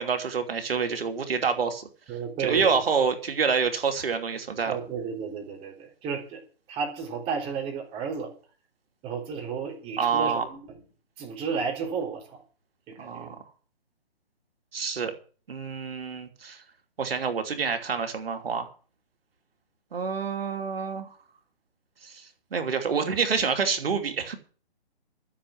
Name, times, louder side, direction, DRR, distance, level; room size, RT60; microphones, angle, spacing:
voice 1, 0.0-1.9 2.4-4.8 10.0-10.5 13.0-13.3 14.7-15.1 15.5-16.6 17.0-18.7 19.9-21.1 22.0-24.3, right 5 dB, 60° right, 6 dB, 3.0 m, -27 dB
voice 2, 2.1-2.8 4.7-6.4 6.7-8.3 9.0-10.6 11.2-12.4 12.9-13.3, right 6 dB, 15° right, 1 dB, 3.8 m, -32 dB
13.0 x 7.3 x 8.7 m, 0.41 s
figure-of-eight pair, 145°, 33 cm